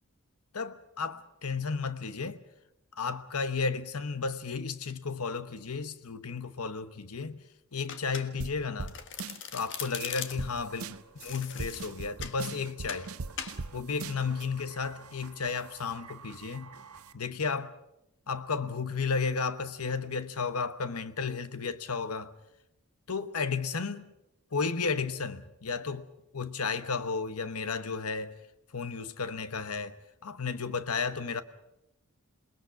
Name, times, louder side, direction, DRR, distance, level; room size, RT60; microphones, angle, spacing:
voice 1, 0.5-2.4 3.0-7.4 7.7-9.0 9.5-10.8 11.2-13.1 13.7-16.7 17.1-17.7 18.3-22.3 23.1-24.1 24.5-26.1 26.3-28.4 28.7-31.4, left 5 dB, 85° left, 1.1 m, -33 dB
Domestic sounds home sounds, 7.9-8.6 8.9-10.6 11.2-12.4 12.9-13.1 13.4-13.6, left 8 dB, 60° left, 1.6 m, -40 dB
sound 1, 8.4-8.5 8.8-8.9 9.2-9.6 10.0-10.1 10.4-10.5 10.8-11.2 11.6-13.7 14.0-14.4, right 4 dB, 70° right, 0.8 m, -38 dB
sound 2, 10.3-17.1, right 5 dB, 85° right, 1.5 m, -52 dB
28.0 x 20.5 x 5.9 m
head